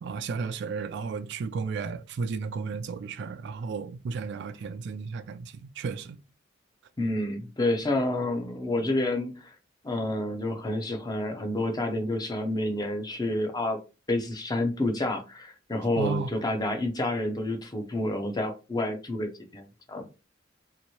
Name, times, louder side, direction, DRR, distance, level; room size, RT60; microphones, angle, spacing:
voice 1, 0.0-6.2 16.0-16.3, right 5 dB, 60° right, 0.3 m, -33 dB
voice 2, 7.0-9.5 9.8-13.8 14.1-20.0, left 1 dB, 20° left, 0.6 m, -29 dB
2.9 x 2.6 x 2.8 m
head